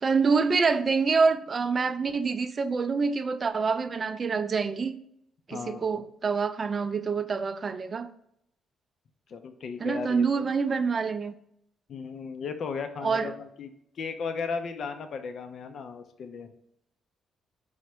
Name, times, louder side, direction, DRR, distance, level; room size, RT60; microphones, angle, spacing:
voice 1, 0.0-5.0 5.5-8.1 9.8-11.3 13.0-13.3, right 5 dB, 40° right, 10 dB, 0.3 m, -26 dB
voice 2, 5.5-6.0 9.3-10.3 11.9-13.7 14.0-16.5, left 5 dB, 60° left, 7 dB, 0.4 m, -35 dB
4.7 x 2.1 x 4.3 m, 0.73 s
cardioid pair, 90°, 0 cm